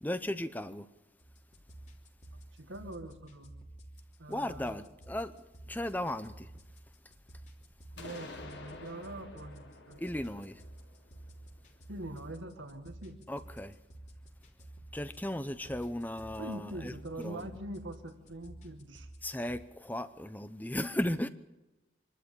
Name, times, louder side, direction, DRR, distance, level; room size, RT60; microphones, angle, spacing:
voice 1, 0.0-0.9 4.3-5.3 5.7-6.5 10.0-10.6 13.3-13.7 14.9-16.9 17.2-17.5 19.2-21.3, left 1 dB, 10° left, 0.7 m, -36 dB
sound 1, 1.2-19.6, right 1 dB, 40° left, 3.1 m, -52 dB
voice 2, 2.6-3.6 4.2-4.8 8.0-10.0 11.9-13.3 16.4-19.1, right 1 dB, 85° right, 2.0 m, -43 dB
sound 2, 8.0-11.8, left 2 dB, 65° left, 3.4 m, -50 dB
26.0 x 12.5 x 8.6 m
head